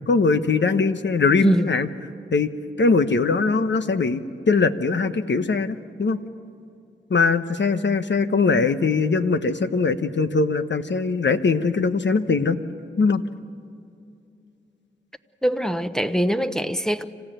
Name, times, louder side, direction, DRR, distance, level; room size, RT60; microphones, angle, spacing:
voice 1, 0.1-1.9 2.3-2.5 2.8-6.2 7.1-12.6 13.0-13.2, left 4 dB, 60° left, 1.1 m, -21 dB
voice 2, 15.4-17.0, equal, 5° left, 1.0 m, -22 dB
27.0 x 15.5 x 9.1 m
cardioid pair, 55°, 21 cm